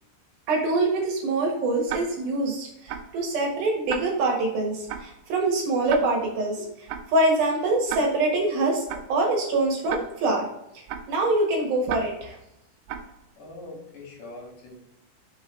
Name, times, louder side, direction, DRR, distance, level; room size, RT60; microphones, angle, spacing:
voice 1, 0.5-8.8 9.1-10.5 11.1-12.4, right 2 dB, 65° right, -2 dB, 2.6 m, -24 dB
Tick-tock, 1.9-2.4 2.9-3.2 3.9-4.4 4.9-5.2 5.9-6.4 6.9-7.2 7.9-8.4 8.9-9.2 9.9-10.4 10.9-11.2 11.9-12.4 12.9-13.2, right 8 dB, 85° right, 2.5 m, -35 dB
voice 2, 13.4-14.7, left 2 dB, 65° left, -1 dB, 3.9 m, -42 dB
6.7 x 5.4 x 3.7 m, 0.83 s
omnidirectional pair, 5.9 m